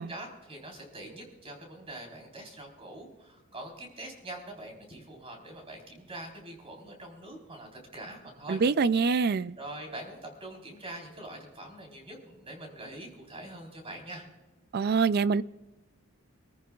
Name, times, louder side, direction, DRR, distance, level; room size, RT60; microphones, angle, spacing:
voice 1, 0.0-8.6 9.5-14.3, right 1 dB, 25° right, 4.0 m, -44 dB
voice 2, 8.5-9.5 14.7-15.4, right 5 dB, 45° right, 0.4 m, -25 dB
26.5 x 14.0 x 2.4 m
head